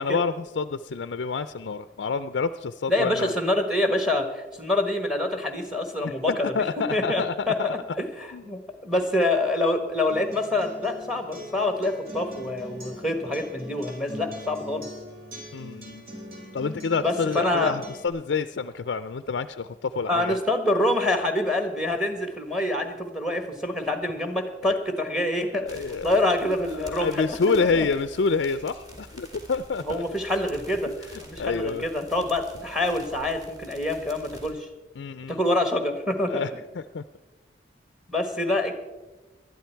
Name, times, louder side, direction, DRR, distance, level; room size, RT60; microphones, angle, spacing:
voice 1, 0.0-3.3 6.0-7.7 8.3-8.4 15.5-16.0 16.5-20.4 25.6-26.3 26.8-30.0 31.4-31.9 35.0-35.4 36.3-36.5 36.7-37.0, left 4 dB, 60° left, 12 dB, 0.4 m, -28 dB
voice 2, 2.9-6.7 6.9-14.9 17.0-17.7 20.1-25.7 26.0-27.8 29.9-30.9 31.2-34.7 35.3-36.4 38.1-38.7, left 1 dB, 5° right, 7 dB, 1.3 m, -26 dB
Acoustic guitar, 10.1-18.1, left 1 dB, 50° right, 3.3 m, -42 dB
sound 1, 25.7-34.5, equal, 20° right, 2.4 m, -47 dB
19.0 x 12.0 x 4.5 m, 1.1 s
head